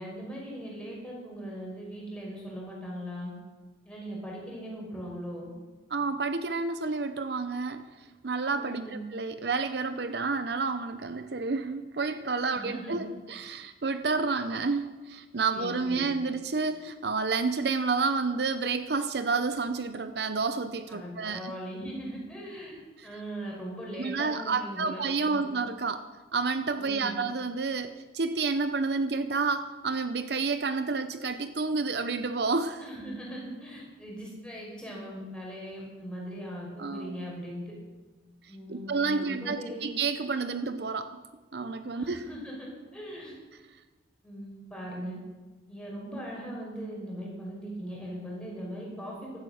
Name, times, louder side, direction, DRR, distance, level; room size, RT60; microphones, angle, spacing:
voice 1, 0.0-3.3 3.8-5.5 8.5-9.0 12.5-13.0 15.5-16.1 20.9-22.8 23.0-25.4 26.8-27.1 32.8-37.7 38.5-39.9 41.9-43.4 44.2-45.2 45.7-49.4, equal, 5° left, -3 dB, 5.4 m, -39 dB
voice 2, 5.9-7.8 8.2-21.5 23.0-23.1 24.0-26.0 26.3-32.8 36.8-37.3 38.7-41.1 41.5-42.2, right 4 dB, 60° right, 10 dB, 0.7 m, -30 dB
15.5 x 12.5 x 6.4 m, 1.3 s
head